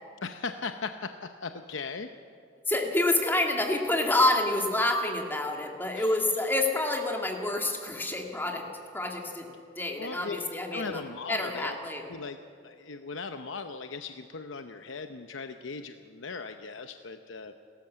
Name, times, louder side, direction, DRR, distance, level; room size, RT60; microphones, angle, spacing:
voice 1, 0.2-2.1 5.9-6.2 10.0-10.4 10.7-11.8 12.1-12.4 12.6-17.5, left 4 dB, 90° left, 8 dB, 0.8 m, -38 dB
voice 2, 2.7-8.6 8.9-9.5 9.8-11.0 11.3-12.1, left 2 dB, 10° left, 2 dB, 2.2 m, -28 dB
29.0 x 14.0 x 7.6 m, 2.3 s
head